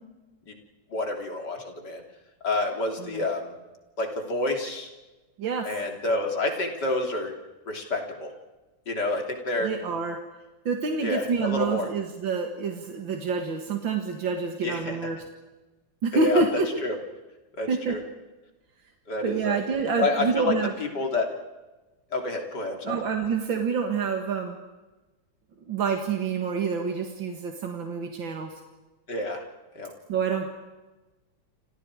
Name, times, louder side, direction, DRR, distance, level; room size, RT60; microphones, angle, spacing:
voice 1, 0.9-2.0 2.4-3.5 4.0-4.9 5.7-7.3 7.7-8.3 8.9-9.7 11.0-11.9 14.6-15.0 16.1-17.0 17.6-18.0 19.1-19.6 20.0-21.3 22.1-23.0 29.1-29.4 29.8-29.9, left 2 dB, 60° left, 3 dB, 3.8 m, -28 dB
voice 2, 5.4-5.7 9.6-10.2 10.7-15.2 16.0-16.8 17.7-18.0 19.2-20.7 22.8-24.6 25.7-28.5 30.1-30.5, right 5 dB, 90° right, 3 dB, 2.6 m, -27 dB
29.5 x 27.5 x 4.9 m, 1.1 s
omnidirectional pair, 2.0 m